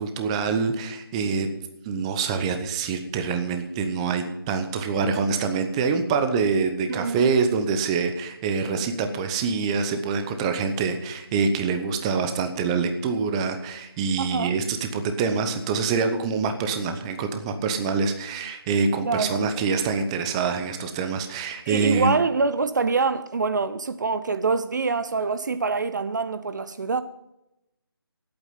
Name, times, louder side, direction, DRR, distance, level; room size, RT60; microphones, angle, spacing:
voice 1, 0.0-1.5 1.8-22.2, right 5 dB, 15° right, 0.9 m, -25 dB
voice 2, 6.9-7.3 14.2-14.6 19.0-19.4 21.7-27.0, right 4 dB, 50° right, 0.7 m, -25 dB
17.5 x 8.8 x 5.7 m
figure-of-eight pair, 160°, 13 cm